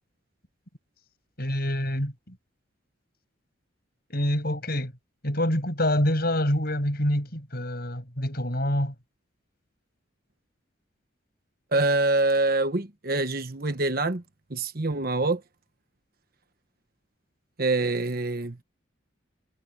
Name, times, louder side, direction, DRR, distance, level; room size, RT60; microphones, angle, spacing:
voice 1, 1.4-2.4 4.1-4.9 5.2-8.9, left 1 dB, 50° left, 7.3 m, -26 dB
voice 2, 11.7-14.2 14.5-15.4 17.6-18.6, right 2 dB, 45° right, 1.2 m, -25 dB
head